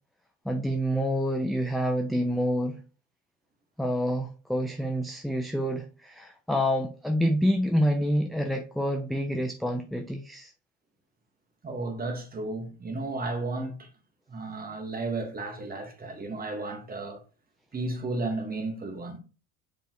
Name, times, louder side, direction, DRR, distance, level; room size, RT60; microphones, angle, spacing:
voice 1, 0.4-2.8 3.8-10.5, equal, ahead, 0.6 m, -27 dB
voice 2, 11.6-13.9 14.3-17.2 17.7-19.2, right 2 dB, 25° right, 1.6 m, -33 dB
6.8 x 5.2 x 3.1 m
supercardioid pair, 105°, 37 cm